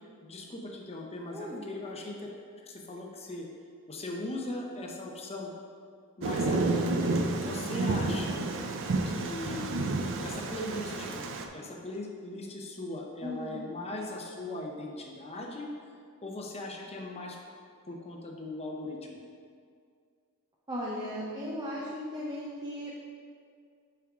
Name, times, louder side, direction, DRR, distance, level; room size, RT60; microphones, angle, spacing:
voice 1, 0.2-2.2 2.6-3.5 3.9-5.5 6.2-6.8 7.4-8.5 9.1-9.7 10.2-11.1 11.5-15.7 16.2-17.4 17.9-19.2, left 2 dB, 30° left, 0 dB, 0.8 m, -39 dB
voice 2, 1.3-1.7 13.2-13.6 20.7-22.9, equal, 20° right, -5 dB, 0.7 m, -37 dB
Thunder, 6.2-11.4, right 2 dB, 60° right, 0.5 m, -30 dB
7.0 x 4.6 x 3.7 m, 2.2 s
head